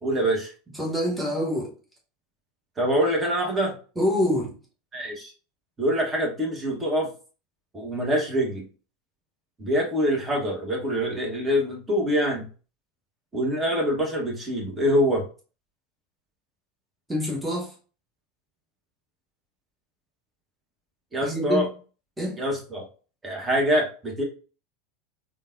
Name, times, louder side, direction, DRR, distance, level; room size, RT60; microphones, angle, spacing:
voice 1, 0.0-0.5 2.8-3.7 4.9-5.3 5.8-7.1 7.7-8.7 9.6-12.5 13.3-15.2 21.1-21.7 22.4-22.8 23.2-24.2, equal, 20° right, 0 dB, 1.3 m, -25 dB
voice 2, 0.7-1.7 3.9-4.6 17.1-17.7 21.2-21.7 22.2-22.4, left 1 dB, 5° right, -3 dB, 1.4 m, -26 dB
3.8 x 2.4 x 2.6 m, 0.36 s
figure-of-eight pair, 80°, 0 cm